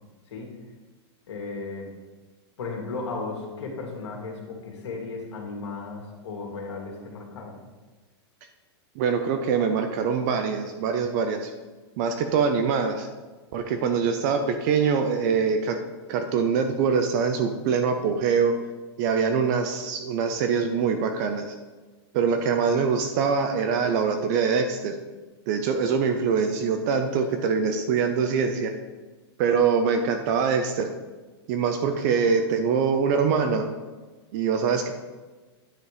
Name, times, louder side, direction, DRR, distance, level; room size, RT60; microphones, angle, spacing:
voice 1, 1.3-1.9 2.6-7.6, left 3 dB, 85° left, 1 dB, 2.0 m, -35 dB
voice 2, 9.0-11.5 12.0-13.1 13.5-15.8 16.1-18.5 19.0-21.5 22.1-24.9 25.5-28.7 29.4-30.9 31.5-33.7 34.3-34.9, right 6 dB, 40° right, 6 dB, 0.6 m, -24 dB
9.6 x 4.1 x 4.9 m, 1.3 s
supercardioid pair, 155°, 14 cm